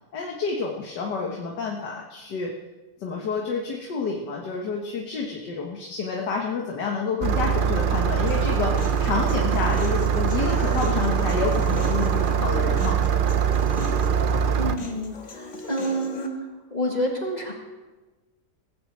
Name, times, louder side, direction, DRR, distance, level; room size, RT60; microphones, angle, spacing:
voice 1, 0.1-2.5 3.0-13.0, left 5 dB, 85° left, 0 dB, 1.9 m, -29 dB
Engine starting, 7.2-14.8, right 7 dB, 75° right, 0.4 m, -23 dB
Human voice, 8.3-16.3, left 3 dB, 45° left, 1.7 m, -40 dB
voice 2, 14.5-16.4 16.7-17.5, equal, 25° left, 0 dB, 2.0 m, -28 dB
19.0 x 6.4 x 7.7 m, 1.2 s
omnidirectional pair, 1.8 m